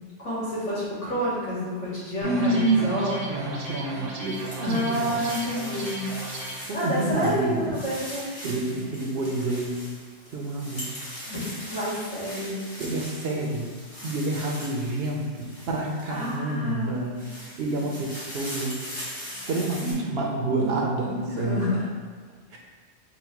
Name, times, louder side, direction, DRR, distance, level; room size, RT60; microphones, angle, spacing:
voice 1, 0.2-3.2 4.6-6.1 6.7-8.3 11.3-12.6 16.1-16.9 21.3-21.9, equal, 75° left, -9 dB, 1.9 m, -29 dB
voice 2, 2.2-5.2 6.6-7.6 8.4-9.8 10.3-10.9 12.8-13.7 14.0-21.7 22.5-22.6, right 2 dB, 65° right, -1 dB, 0.7 m, -28 dB
sound 1, 2.2-6.6, right 2 dB, 80° right, 1.1 m, -36 dB
sound 2, 3.7-16.5 17.0-19.9, equal, 25° left, 1.1 m, -40 dB
4.0 x 2.2 x 4.4 m, 1.5 s
omnidirectional pair, 1.2 m